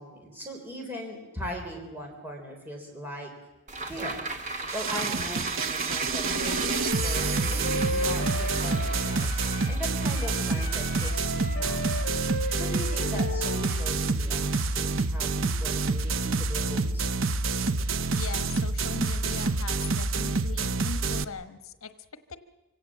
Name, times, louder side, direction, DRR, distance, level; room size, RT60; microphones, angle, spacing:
voice 1, 0.0-3.3 3.8-4.3 4.7-9.3 9.7-12.1 12.6-17.1, equal, 10° right, 1 dB, 3.6 m, -39 dB
sound 1, 3.7-14.2 14.6-14.7, right 3 dB, 35° right, 2.0 m, -37 dB
sound 2, 4.7-21.2, right 3 dB, 65° right, 0.8 m, -28 dB
Wind instrument woodwind instrument, 6.2-9.8 10.1-14.0, left 1 dB, 50° left, 3.1 m, -35 dB
voice 2, 18.1-21.9 22.3-22.4, left 5 dB, 80° left, 10 dB, 1.2 m, -40 dB
25.5 x 17.0 x 7.4 m, 1.2 s
head